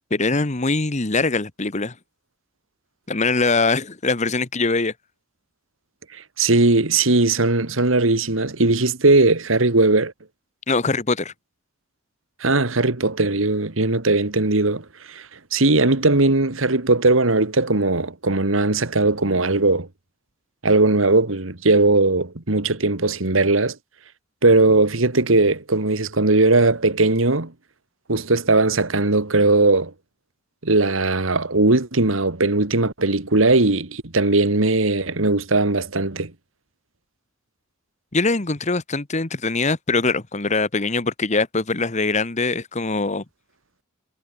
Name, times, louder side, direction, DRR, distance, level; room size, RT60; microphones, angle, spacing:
voice 1, 0.1-1.9 3.1-4.9 10.7-11.3 38.1-43.2, left 3 dB, 35° left, 1.3 m, -22 dB
voice 2, 6.4-10.1 12.4-15.3 15.5-19.9 20.6-23.8 24.4-27.5 28.1-29.9 30.6-36.3, right 2 dB, 75° right, 1.9 m, -19 dB
head